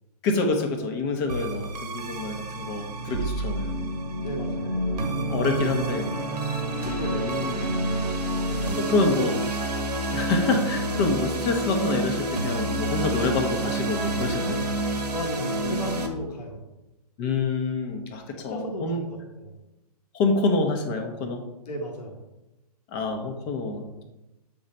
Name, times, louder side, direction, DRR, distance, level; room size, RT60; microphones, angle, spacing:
voice 1, 0.2-3.8 5.3-6.1 6.8-7.7 8.9-9.3 10.1-14.6 17.2-19.0 20.1-21.4 22.9-24.0, left 3 dB, 25° left, 4 dB, 0.9 m, -27 dB
voice 2, 1.3-1.6 4.2-4.8 6.8-7.3 7.6-7.7 8.5-9.2 15.1-16.7 18.4-19.6 21.6-22.2, left 1 dB, 80° left, 1 dB, 1.3 m, -35 dB
sound 1, 1.3-16.1, right 1 dB, 85° right, 1.3 m, -28 dB
7.8 x 4.0 x 4.3 m, 0.98 s
hypercardioid pair, 145°, 20 cm